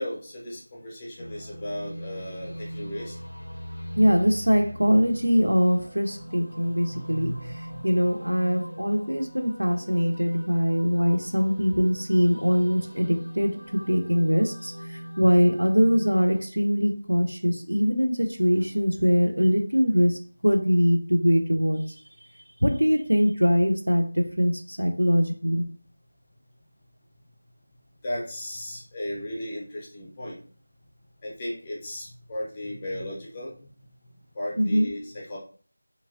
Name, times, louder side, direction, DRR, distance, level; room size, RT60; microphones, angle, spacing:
voice 1, 0.0-3.1 6.9-8.1 15.2-15.3 28.0-30.4 31.2-33.6 34.3-35.4, left 1 dB, 15° left, -5 dB, 0.7 m, -35 dB
sound 1, 1.2-16.4, equal, 75° left, 0.4 m, -41 dB
voice 2, 4.0-7.3 7.8-21.8 22.6-25.6 34.6-34.9, equal, 80° right, 5 dB, 0.5 m, -22 dB
2.8 x 2.6 x 2.6 m, 0.43 s
figure-of-eight pair, 165°, 0 cm